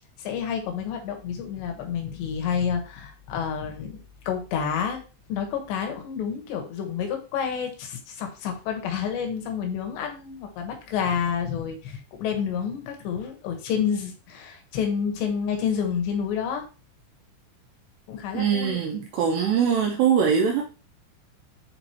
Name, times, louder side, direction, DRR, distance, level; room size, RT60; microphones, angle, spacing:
voice 1, 0.2-5.0 5.3-16.6 18.1-18.8, left 7 dB, 70° left, 3 dB, 3.1 m, -29 dB
voice 2, 18.3-20.6, right 7 dB, 85° right, 2 dB, 2.4 m, -22 dB
8.9 x 3.9 x 2.9 m, 0.34 s
omnidirectional pair, 5.8 m